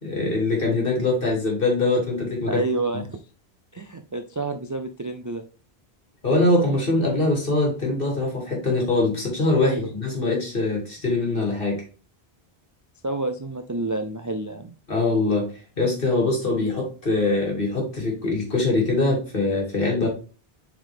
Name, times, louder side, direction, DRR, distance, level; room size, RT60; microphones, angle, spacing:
voice 1, 0.0-2.6 2.9-3.0 6.2-11.8 14.9-15.5 15.8-20.1, left 2 dB, 60° left, -1 dB, 2.8 m, -23 dB
voice 2, 2.5-3.2 3.7-5.4 9.6-9.9 13.0-14.7, right 2 dB, 30° right, 6 dB, 0.3 m, -29 dB
7.5 x 4.7 x 3.5 m, 0.36 s
omnidirectional pair, 1.0 m